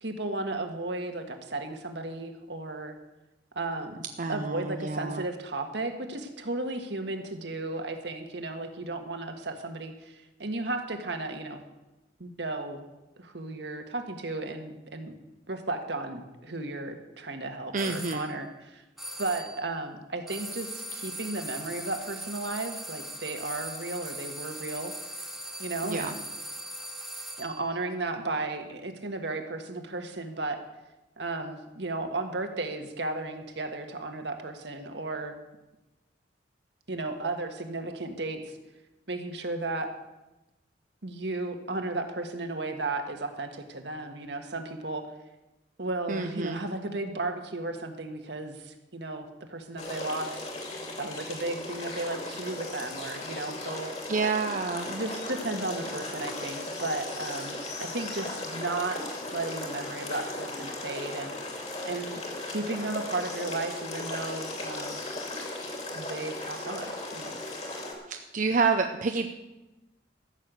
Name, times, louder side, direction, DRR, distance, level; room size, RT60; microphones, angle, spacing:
voice 1, 0.0-2.9 3.5-11.6 12.2-12.9 13.2-15.1 15.5-18.8 19.2-24.9 25.6-26.2 27.4-30.6 31.2-35.3 36.9-38.6 39.1-39.9 41.0-45.0 45.8-50.4 51.0-53.9 54.9-61.6 61.8-62.2 62.4-65.0 65.9-67.4, right 2 dB, 70° right, 5 dB, 1.5 m, -34 dB
voice 2, 4.2-5.2 17.7-18.3 25.8-26.1 46.1-46.6 54.1-54.9 68.1-69.3, right 4 dB, 45° right, 6 dB, 0.6 m, -28 dB
sound 1, 17.8-18.3 19.0-19.6 20.3-27.6, right 1 dB, ahead, 0.9 m, -40 dB
sound 2, 49.8-67.9, left 2 dB, 35° left, 2.4 m, -37 dB
14.0 x 6.6 x 8.1 m, 1.0 s
head